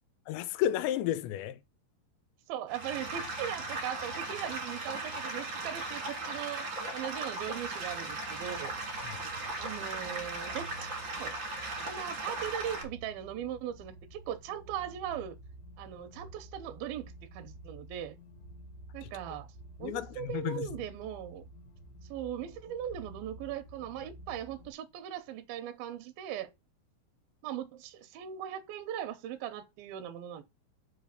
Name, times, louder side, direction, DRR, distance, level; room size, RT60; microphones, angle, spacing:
voice 1, 0.3-1.6 9.0-9.2 19.8-20.7, left 12 dB, 85° left, 2.8 m, -32 dB
voice 2, 2.5-6.7 6.9-8.7 9.6-10.9 11.2-11.4 11.8-15.4 15.8-17.1 17.3-18.2 18.9-19.5 19.8-21.5 22.1-26.5 27.4-30.4, right 10 dB, 75° right, 2.3 m, -39 dB
sound 1, 2.7-12.8, right 2 dB, 35° right, 2.3 m, -37 dB
sound 2, 8.4-24.7, right 1 dB, 70° left, 3.1 m, -51 dB
5.4 x 5.1 x 6.5 m
omnidirectional pair, 5.1 m